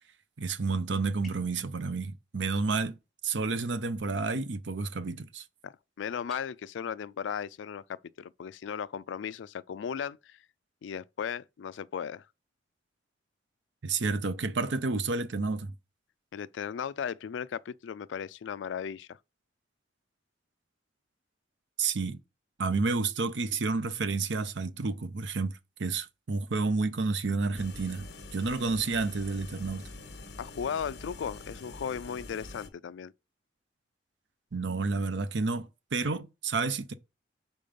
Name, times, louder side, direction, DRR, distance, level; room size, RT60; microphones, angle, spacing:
voice 1, 0.4-3.0 3.2-5.4 13.8-15.7 21.8-22.2 22.6-25.5 25.8-29.8 34.5-36.9, right 4 dB, 80° right, 0.7 m, -30 dB
sound 1, 1.2-1.6 6.2-6.4, left 1 dB, ahead, 1.5 m, -50 dB
voice 2, 5.6-10.4 10.8-12.3 16.3-19.2 30.4-33.1, left 7 dB, 90° left, 0.3 m, -36 dB
sound 2, 27.5-32.7, left 2 dB, 65° left, 1.2 m, -45 dB
5.3 x 4.5 x 5.1 m
head